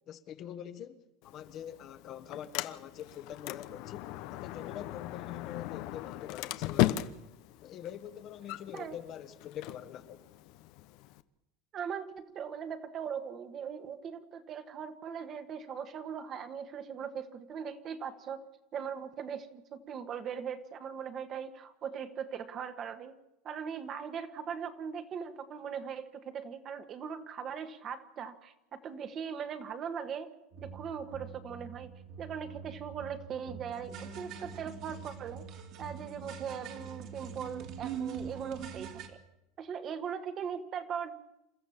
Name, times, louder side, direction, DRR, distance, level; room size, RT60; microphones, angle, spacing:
voice 1, 0.1-7.1 7.6-10.2, left 10 dB, 40° left, 1.4 m, -45 dB
Sliding door, 1.2-11.2, left 16 dB, 60° left, 0.9 m, -37 dB
voice 2, 11.7-18.4 18.7-23.1 23.4-30.3 30.6-31.9 32.2-35.4 35.8-39.2 39.6-41.1, right 7 dB, 35° right, 1.6 m, -40 dB
sound 1, 30.5-39.1, right 7 dB, 50° right, 2.7 m, -44 dB
28.5 x 13.5 x 7.3 m
supercardioid pair, 135°, 0 cm